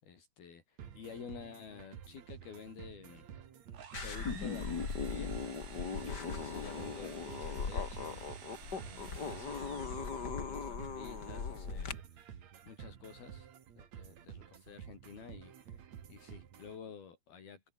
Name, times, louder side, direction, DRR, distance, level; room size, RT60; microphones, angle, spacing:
voice 1, 0.0-3.3 3.9-5.8 6.0-8.3 8.8-10.0 10.4-13.5 13.8-17.6, left 6 dB, 70° left, 6.1 m, -51 dB
sound 1, 0.8-16.8, right 8 dB, 50° right, 2.9 m, -52 dB
sound 2, 3.7-10.4, right 7 dB, 75° right, 5.4 m, -53 dB
sound 3, 3.9-11.9, left 5 dB, 30° left, 2.2 m, -39 dB
omnidirectional pair, 4.5 m